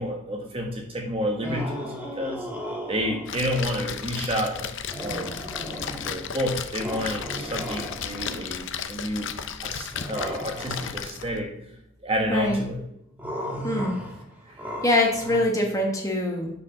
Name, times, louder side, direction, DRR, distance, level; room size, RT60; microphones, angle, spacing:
voice 1, 0.0-2.4 2.9-4.7 5.0-5.3 6.0-11.5 12.0-12.8 14.5-14.7, equal, 25° right, 1 dB, 1.3 m, -30 dB
sound 1, 1.4-3.5 4.9-6.3 6.8-8.4 9.9-11.0 13.2-15.4, equal, 5° right, 1.5 m, -36 dB
Splash splatter, 3.2-11.4, left 7 dB, 55° left, 0.5 m, -34 dB
voice 2, 13.6-14.0 14.8-16.5, left 1 dB, 15° left, 0 dB, 1.2 m, -23 dB
6.0 x 4.7 x 5.8 m, 0.81 s
head